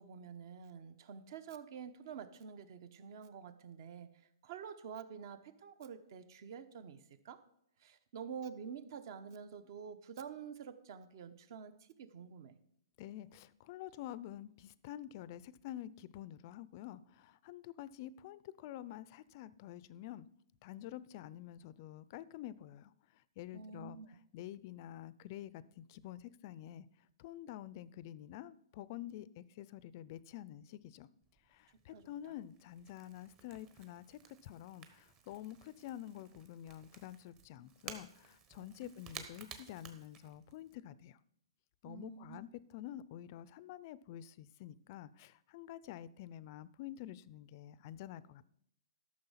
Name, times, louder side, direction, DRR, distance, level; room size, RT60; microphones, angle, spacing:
voice 1, 0.0-4.1 4.4-7.4 7.8-12.6 23.5-24.1 31.9-32.1 38.6-38.9 41.8-42.5, right 7 dB, 50° right, 13 dB, 0.9 m, -48 dB
voice 2, 13.0-20.3 20.6-24.0 24.3-26.9 27.2-31.1 31.5-41.2 41.8-48.4, left 12 dB, 35° left, 18 dB, 0.4 m, -48 dB
Crackle / Crack, 31.2-40.8, right 6 dB, 25° right, 1.0 m, -55 dB
13.0 x 6.3 x 5.7 m, 0.73 s
hypercardioid pair, 155°, 3 cm